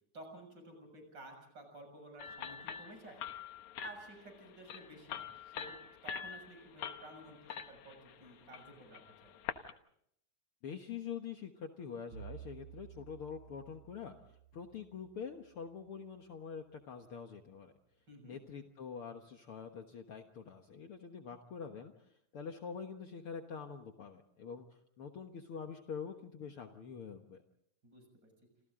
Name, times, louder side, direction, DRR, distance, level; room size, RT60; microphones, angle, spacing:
voice 1, 0.1-3.2 3.8-9.3 18.1-18.4 27.8-28.0, right 1 dB, 35° right, 4 dB, 7.6 m, -53 dB
sound 1, 2.2-9.7, left 8 dB, 80° left, 2.7 m, -45 dB
voice 2, 10.6-14.1 14.5-17.7 18.2-21.9 22.3-24.7 25.0-27.4, left 6 dB, 55° left, 5 dB, 2.0 m, -45 dB
Bowed string instrument, 12.1-16.3, right 10 dB, 60° right, 2.3 m, -54 dB
28.5 x 28.0 x 3.8 m, 0.72 s
omnidirectional pair, 3.3 m